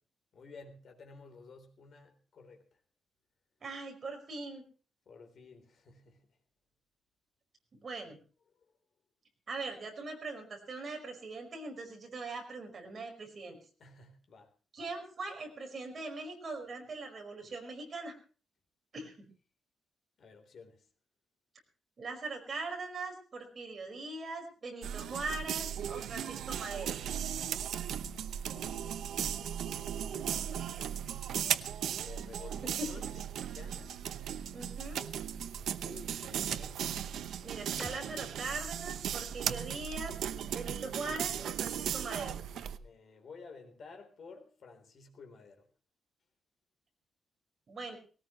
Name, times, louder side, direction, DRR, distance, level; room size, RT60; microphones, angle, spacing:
voice 1, 0.3-2.8 5.1-6.4 8.5-8.7 13.8-14.5 20.2-20.9 28.3-31.3 32.0-34.0 35.8-36.8 42.6-45.7, left 4 dB, 50° left, 5 dB, 3.7 m, -53 dB
voice 2, 3.6-4.6 7.8-8.2 9.5-13.6 14.7-18.1 18.9-19.3 22.0-27.0 32.8-32.9 34.5-35.1 37.4-40.2 40.5-42.3 47.7-48.0, right 3 dB, 35° right, 3 dB, 5.1 m, -41 dB
sound 1, 24.8-42.8, right 9 dB, 85° right, 0.8 m, -37 dB
sound 2, 37.8-41.6, equal, ahead, 2.6 m, -54 dB
19.5 x 18.5 x 3.1 m, 0.39 s
wide cardioid pair, 170°, 0 cm